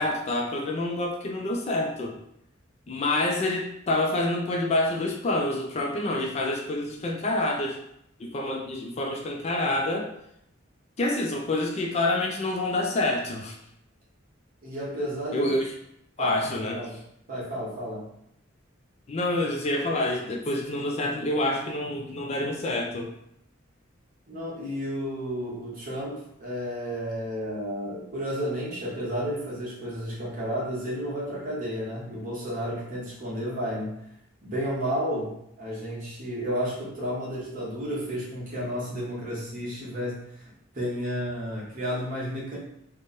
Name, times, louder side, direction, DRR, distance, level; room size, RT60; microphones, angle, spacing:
voice 1, 0.0-2.2 2.9-7.8 8.2-10.1 11.0-13.6 15.3-15.7 16.2-16.8 19.1-23.1, left 2 dB, 30° left, 1 dB, 0.4 m, -27 dB
voice 2, 14.6-15.5 16.2-17.0 17.3-18.1 24.3-34.0 34.4-42.6, equal, 40° right, -6 dB, 1.2 m, -32 dB
3.3 x 2.1 x 4.0 m, 0.76 s
head